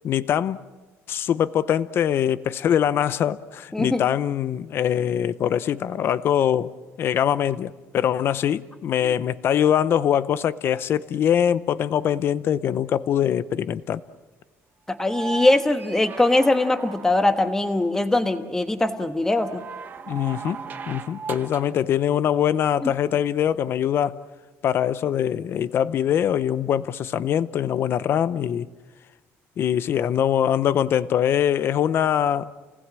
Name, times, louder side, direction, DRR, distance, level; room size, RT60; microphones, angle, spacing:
voice 1, 0.0-0.6 1.1-6.7 7.0-14.0 20.1-20.6 20.9-24.2 24.6-28.7 29.6-32.5, left 9 dB, 45° left, 0.7 m, -23 dB
voice 2, 3.7-4.0 14.9-19.6 22.8-22.9, left 2 dB, 10° left, 1.4 m, -21 dB
sound 1, 15.0-17.5 19.3-21.8 23.5-23.6, right 5 dB, 35° right, 1.1 m, -37 dB
29.5 x 19.0 x 7.5 m
cardioid pair, 165°, 5 cm